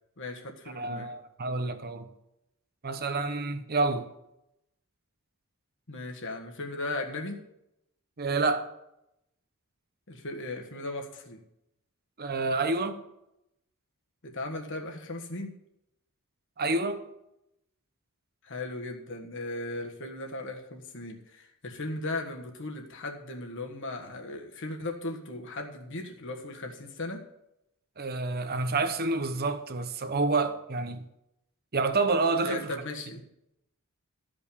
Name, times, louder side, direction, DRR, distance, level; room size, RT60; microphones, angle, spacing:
voice 1, 0.2-1.1 5.9-7.4 10.1-11.4 14.2-15.5 18.4-27.2 32.4-33.2, left 2 dB, 60° left, 1.5 m, -37 dB
voice 2, 0.8-2.1 2.8-4.1 8.2-8.7 12.2-13.0 16.6-17.1 28.0-31.0 31.7-32.7, right 3 dB, 45° right, 0.9 m, -28 dB
13.5 x 5.2 x 7.0 m
head